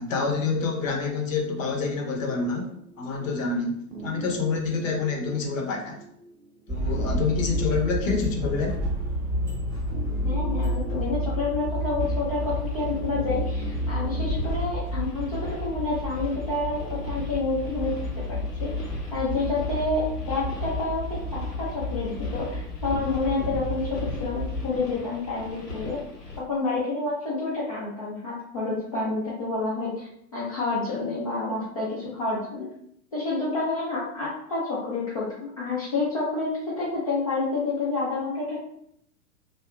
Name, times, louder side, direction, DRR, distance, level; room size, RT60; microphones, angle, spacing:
voice 1, 0.0-6.0 6.7-8.8, left 4 dB, 55° left, 2 dB, 0.7 m, -27 dB
sound 1, 2.3-14.6, right 3 dB, 70° right, 0.6 m, -42 dB
sound 2, 6.7-24.7, equal, 10° right, 0.9 m, -30 dB
voice 2, 10.2-18.7 19.1-26.0 26.3-32.7 33.1-38.6, left 3 dB, 25° left, -7 dB, 0.4 m, -29 dB
sound 3, 12.0-26.4, left 2 dB, 85° left, 0.9 m, -41 dB
2.7 x 2.2 x 2.3 m, 0.71 s
figure-of-eight pair, 100°, 46 cm